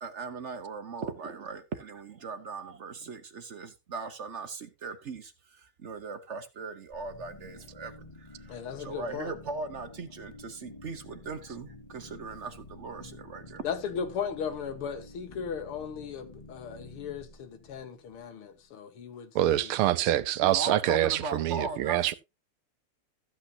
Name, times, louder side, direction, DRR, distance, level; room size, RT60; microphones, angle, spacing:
voice 1, 0.0-13.6 20.4-22.1, right 4 dB, 55° right, 0.8 m, -39 dB
sound 1, 6.9-18.7, left 2 dB, 15° left, 1.2 m, -50 dB
voice 2, 8.5-9.3 13.6-19.7, left 7 dB, 80° left, 2.3 m, -37 dB
voice 3, 19.3-22.1, right 13 dB, 80° right, 1.6 m, -25 dB
14.0 x 8.3 x 2.8 m
omnidirectional pair, 2.4 m